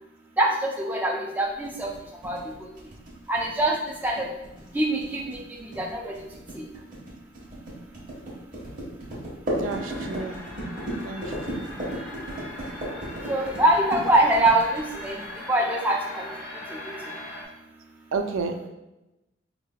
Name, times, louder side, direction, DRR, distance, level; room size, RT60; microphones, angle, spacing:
voice 1, 0.4-1.9 2.2-2.5 3.3-3.8 4.0-4.3 4.7-5.4 5.8-6.1 6.6-6.7 13.3-15.2 15.5-16.3 16.7-16.8, right 1 dB, 10° right, -1 dB, 0.4 m, -23 dB
sound 1, 1.6-15.4, equal, 40° right, 1.1 m, -35 dB
sound 2, 9.6-17.4, left 1 dB, 85° left, 0.9 m, -40 dB
voice 2, 9.6-10.4 11.0-11.2 11.5-11.7 18.1-18.6, right 4 dB, 75° right, 6 dB, 0.4 m, -30 dB
4.5 x 3.4 x 2.2 m, 0.97 s
head